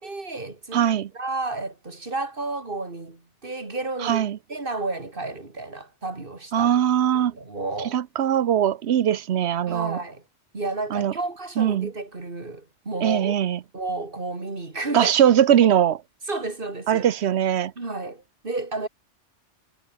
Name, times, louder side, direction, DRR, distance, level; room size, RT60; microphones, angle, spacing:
voice 1, 0.0-6.8 7.3-8.0 9.7-10.2 10.5-13.3 13.7-15.1 16.3-17.1 17.8-18.9, right 3 dB, 45° right, 3.1 m, -32 dB
voice 2, 0.7-1.1 4.0-4.4 6.5-7.3 7.9-10.0 10.9-11.1 11.6-11.9 13.0-13.6 14.9-16.0 16.9-17.7, right 10 dB, 65° right, 1.0 m, -21 dB
omnidirectional pair, 1.2 m